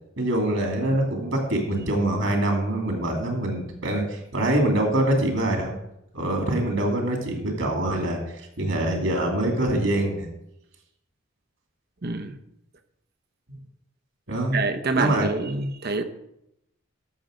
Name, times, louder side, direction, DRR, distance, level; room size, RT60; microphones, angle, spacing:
voice 1, 0.2-5.7 6.1-8.2 8.6-10.3 14.3-14.6 14.9-15.3, right 1 dB, 70° right, 2.6 m, -24 dB
voice 2, 12.0-12.4 14.5-16.0, right 3 dB, 50° right, 0.8 m, -26 dB
13.0 x 6.7 x 5.1 m
head